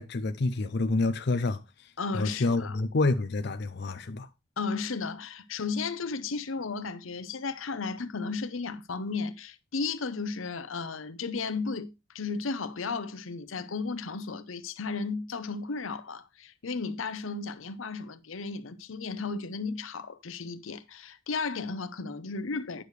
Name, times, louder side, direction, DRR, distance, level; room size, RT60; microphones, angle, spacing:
voice 1, 0.0-4.3, left 3 dB, 55° left, 0.6 m, -28 dB
voice 2, 2.0-2.8 4.6-22.8, left 4 dB, 90° left, 0.8 m, -34 dB
10.0 x 6.6 x 3.2 m
head